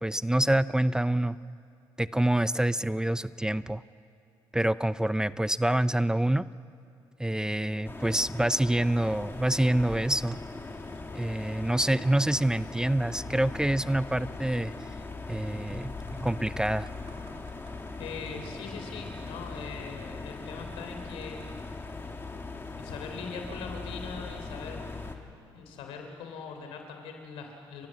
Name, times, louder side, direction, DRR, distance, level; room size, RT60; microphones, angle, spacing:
voice 1, 0.0-1.4 2.0-3.8 4.5-6.4 7.2-10.4 11.1-14.7 15.3-16.9, right 1 dB, 5° right, 16 dB, 0.5 m, -26 dB
sound 1, 7.8-25.2, left 3 dB, 25° left, 2.3 m, -40 dB
sound 2, 15.5-21.9 22.6-22.8, right 4 dB, 75° right, 5.2 m, -60 dB
voice 2, 18.0-21.4 22.8-25.0 25.5-27.9, left 5 dB, 90° left, 4 dB, 3.5 m, -41 dB
30.0 x 15.0 x 7.6 m, 2.5 s
cardioid pair, 75°, 9 cm